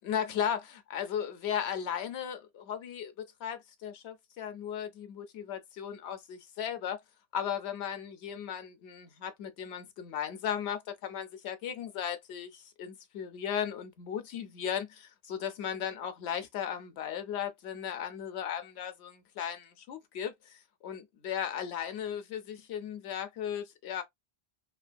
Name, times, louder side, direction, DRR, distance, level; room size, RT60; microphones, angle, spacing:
voice 1, 0.0-7.0 7.3-24.0, left 9 dB, 85° left, 0.9 m, -36 dB
2.8 x 2.6 x 2.2 m
omnidirectional pair, 1.1 m